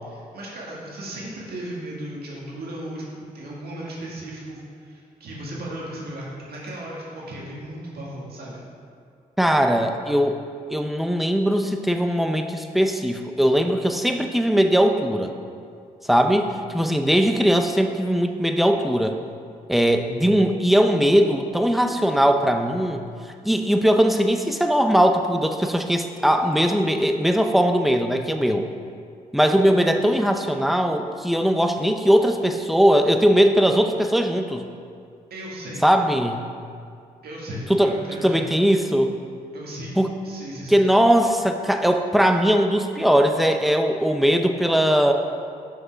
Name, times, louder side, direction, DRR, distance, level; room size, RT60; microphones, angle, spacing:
voice 1, 0.1-8.6 35.3-35.8 37.2-38.4 39.5-40.0 40.2-40.8, right 1 dB, 75° right, -4 dB, 1.8 m, -36 dB
voice 2, 9.4-10.4 10.7-15.3 16.0-19.2 19.7-23.0 23.4-28.7 29.3-34.6 35.8-36.4 37.7-39.1 40.0-40.2 40.7-45.1, equal, ahead, 5 dB, 0.6 m, -20 dB
6.0 x 5.7 x 5.7 m, 2.3 s
cardioid pair, 70°, 16 cm